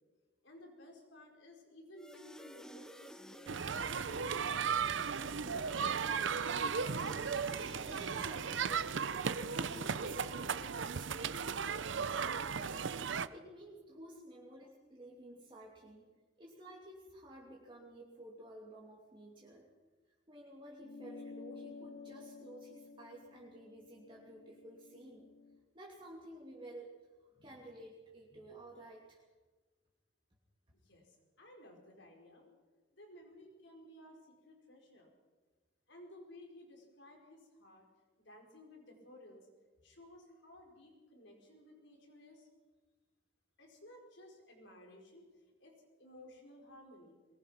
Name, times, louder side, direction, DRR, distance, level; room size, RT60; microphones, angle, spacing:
voice 1, 0.4-3.6 4.0-6.5 30.8-32.5 32.9-35.1 35.9-37.9 38.2-39.5 39.8-42.5 43.6-45.3 45.6-47.2, left 1 dB, 75° left, 1 dB, 5.2 m, -56 dB
sound 1, 2.0-11.1, equal, 5° left, 0.7 m, -55 dB
sound 2, 3.5-13.3, right 6 dB, 75° right, 0.7 m, -36 dB
voice 2, 7.5-9.2 9.5-12.8 13.1-16.1 16.4-19.7 20.3-25.3 25.7-26.9 27.2-29.2, right 1 dB, 25° right, -3 dB, 2.7 m, -53 dB
sound 3, 20.8-25.6, left 4 dB, 50° left, 0.7 m, -52 dB
22.5 x 20.0 x 5.9 m, 1.3 s
head